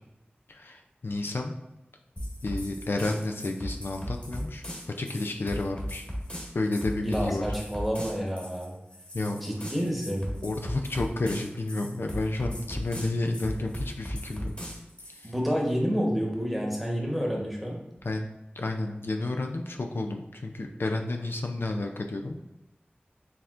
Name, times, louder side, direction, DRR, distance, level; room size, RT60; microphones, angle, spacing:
voice 1, 0.5-1.5 2.4-4.6 5.0-6.0 6.5-7.5 9.1-9.4 10.4-14.5 15.1-15.3 18.0-18.3 18.6-22.4, left 2 dB, 75° left, 3 dB, 0.4 m, -31 dB
sound 1, 2.2-15.3, equal, 30° left, 1.3 m, -37 dB
voice 2, 7.0-8.7 9.4-10.3 15.2-17.8, equal, ahead, -2 dB, 1.0 m, -29 dB
4.7 x 3.6 x 2.4 m, 0.94 s
wide cardioid pair, 55°, 4 cm